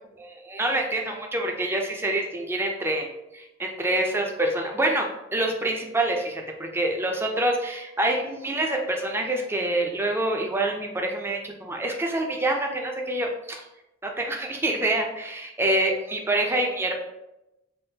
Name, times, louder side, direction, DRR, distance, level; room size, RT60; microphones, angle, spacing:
voice 1, 0.2-3.1 3.3-13.6 14.0-17.0, right 1 dB, 10° right, 2 dB, 0.4 m, -26 dB
3.6 x 2.5 x 2.7 m, 0.92 s
head